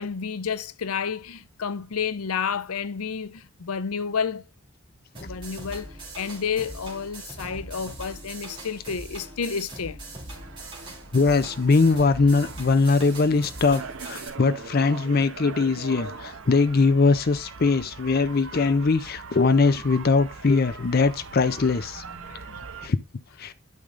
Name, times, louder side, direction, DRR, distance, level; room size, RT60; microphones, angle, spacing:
voice 1, 0.0-4.4 5.2-10.0 22.2-22.4, left 6 dB, 90° left, 0.6 m, -30 dB
sound 1, 5.1-14.3, right 2 dB, 25° right, 2.9 m, -41 dB
sound 2, 10.3-22.9, right 4 dB, 65° right, 0.8 m, -41 dB
voice 2, 11.1-22.0 22.3-22.4 22.8-23.0 23.4-23.5, left 4 dB, 45° left, 0.5 m, -21 dB
12.0 x 5.2 x 2.5 m
head